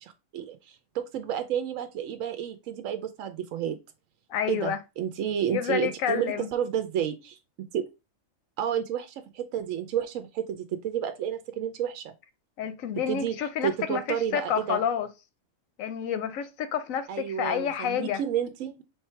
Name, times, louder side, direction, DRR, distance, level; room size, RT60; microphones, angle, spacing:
voice 1, 0.0-3.8 4.5-7.4 7.7-7.8 8.6-12.1 13.1-13.3 13.6-14.8 17.1-18.8, right 9 dB, 80° right, 1.0 m, -31 dB
voice 2, 4.3-4.8 5.5-6.5 12.6-15.1 15.8-18.2, left 8 dB, 85° left, 1.1 m, -29 dB
3.3 x 3.1 x 4.3 m
omnidirectional pair, 1.4 m